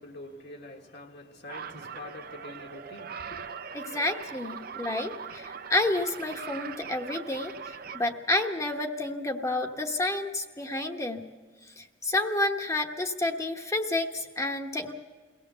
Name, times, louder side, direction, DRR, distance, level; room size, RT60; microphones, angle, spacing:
voice 1, 0.0-3.5, left 2 dB, 65° left, 1.6 m, -45 dB
sound 1, 1.5-8.1, right 6 dB, 55° right, 0.8 m, -41 dB
voice 2, 3.7-11.2 11.8-14.9, left 2 dB, 15° left, 1.1 m, -30 dB
22.5 x 17.0 x 6.8 m
head